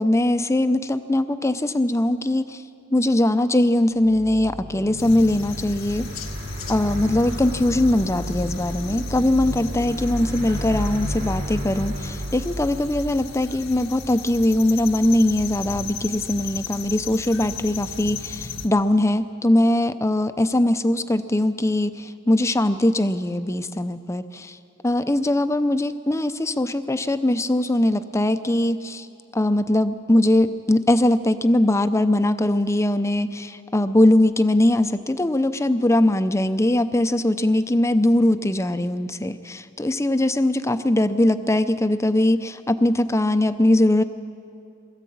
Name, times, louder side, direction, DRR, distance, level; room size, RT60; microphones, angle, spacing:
voice 1, 0.0-2.6 2.9-6.1 6.7-24.6 24.8-29.1 29.3-44.0, left 1 dB, 15° left, 11 dB, 0.6 m, -21 dB
sound 1, 4.0-14.2, equal, 60° right, 2.8 m, -32 dB
sound 2, 5.0-18.7, left 5 dB, 80° left, 1.2 m, -36 dB
22.0 x 14.0 x 8.6 m, 2.5 s
head